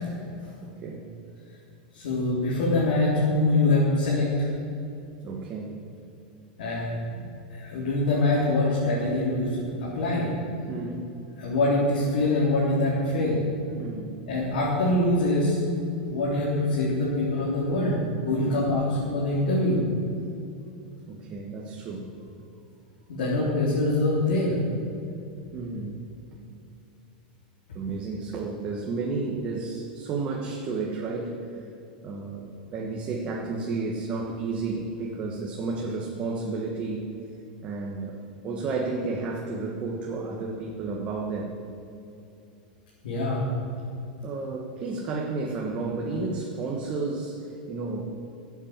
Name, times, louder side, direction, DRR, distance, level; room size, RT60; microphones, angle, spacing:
voice 1, 0.6-1.1 5.2-5.7 10.7-11.1 13.8-14.1 18.3-18.5 21.1-22.1 25.5-26.0 27.7-31.6 32.0-37.1 37.6-41.5 44.2-48.1, right 3 dB, 25° right, -1 dB, 1.3 m, -32 dB
voice 2, 1.9-4.5 6.6-6.9 7.5-10.3 11.4-13.4 14.3-15.6 16.1-18.0 18.2-19.8 23.1-24.6 43.0-43.4, left 2 dB, 85° left, -7 dB, 3.7 m, -24 dB
13.0 x 8.4 x 7.5 m, 2.7 s
supercardioid pair, 155°, 5 cm